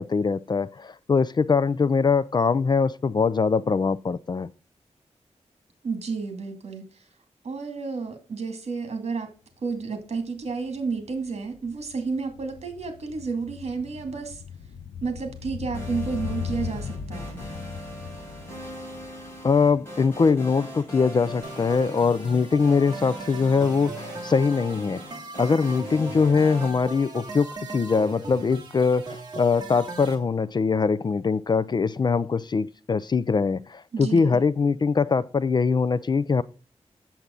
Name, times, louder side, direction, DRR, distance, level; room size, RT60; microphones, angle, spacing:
voice 1, 0.0-4.5 19.4-25.0 25.4-36.4, left 5 dB, 40° left, 0.4 m, -22 dB
voice 2, 5.8-7.1 7.4-9.3 9.6-14.4 15.0-17.4 33.9-34.4, right 4 dB, 60° right, 2.4 m, -31 dB
sound 1, 9.8-9.9 10.2-20.5 20.8-20.9, left 7 dB, 90° left, 0.6 m, -38 dB
sound 2, 15.7-26.7, equal, 20° left, 5.2 m, -40 dB
sound 3, 21.4-30.1, right 3 dB, 35° right, 2.1 m, -39 dB
8.1 x 7.4 x 3.8 m
wide cardioid pair, 155°, 12 cm